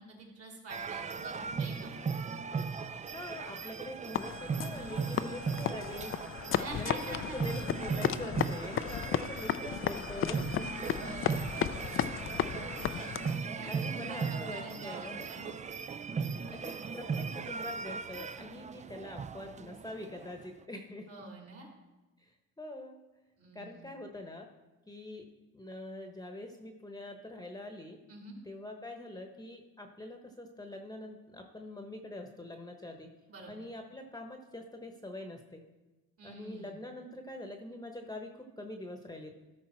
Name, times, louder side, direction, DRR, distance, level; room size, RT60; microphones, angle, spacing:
voice 1, 0.0-2.1 6.5-7.4 10.7-12.3 13.6-15.6 21.1-21.7 23.4-23.9 28.1-28.4 33.3-33.5 36.2-36.8, right 2 dB, 50° right, -1 dB, 3.0 m, -46 dB
sound 1, 0.7-20.4, right 5 dB, 25° right, 0.4 m, -38 dB
voice 2, 3.1-6.1 6.6-10.9 13.6-15.3 16.4-21.2 22.2-23.0 23.5-24.5 24.9-25.3 25.5-28.0 28.4-33.1 33.5-35.6 36.2-39.3, left 1 dB, 15° left, 4 dB, 1.0 m, -44 dB
sound 2, 4.1-13.4, left 10 dB, 45° left, 0.4 m, -35 dB
13.0 x 5.2 x 4.4 m, 1.1 s
cardioid pair, 90°, 30 cm